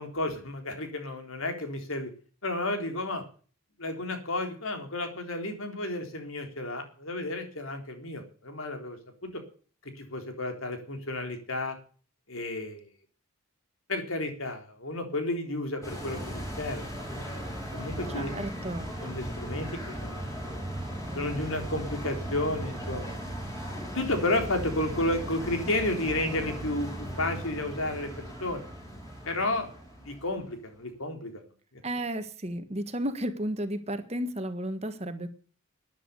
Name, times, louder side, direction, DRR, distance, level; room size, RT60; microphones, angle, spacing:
voice 1, 0.0-2.1 2.4-3.2 3.8-9.4 9.8-11.8 12.3-12.9 13.9-16.9 17.7-18.3 19.0-19.7 20.0-20.7 21.1-23.1 23.9-28.6 29.3-29.8 30.0-31.4 31.7-31.8, left 2 dB, 70° left, 5 dB, 3.8 m, -32 dB
sound 1, 15.8-30.5 30.8-30.9, equal, 15° left, 5.2 m, -37 dB
voice 2, 18.1-18.9 31.8-35.3, right 1 dB, 30° right, 8 dB, 1.5 m, -33 dB
13.0 x 10.5 x 6.8 m, 0.41 s
head